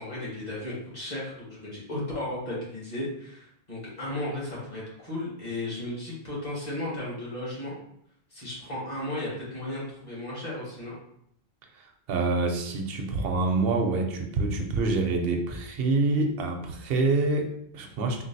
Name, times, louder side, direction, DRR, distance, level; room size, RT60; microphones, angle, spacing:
voice 1, 0.0-7.8 8.3-10.9, left 1 dB, 45° left, -6 dB, 1.3 m, -35 dB
voice 2, 11.8-18.2, right 3 dB, 75° right, 4 dB, 0.8 m, -26 dB
3.8 x 2.3 x 2.6 m, 0.71 s
omnidirectional pair, 1.0 m